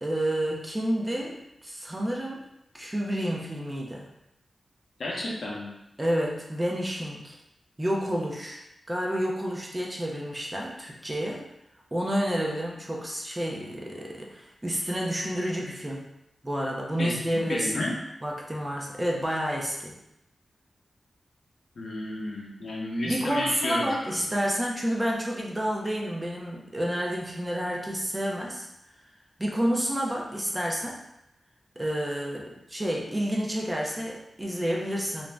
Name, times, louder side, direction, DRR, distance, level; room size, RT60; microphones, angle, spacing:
voice 1, 0.0-2.4 2.7-4.1 6.0-7.4 7.8-8.6 8.9-11.4 11.9-16.0 16.4-17.8 18.2-19.9 23.0-28.7 29.4-31.0 31.8-35.3, equal, 15° right, -2 dB, 0.5 m, -29 dB
voice 2, 5.0-5.7 17.0-18.0 21.8-24.2, left 1 dB, 65° left, -3 dB, 0.6 m, -32 dB
2.5 x 2.1 x 3.3 m, 0.83 s
wide cardioid pair, 100°, 0 cm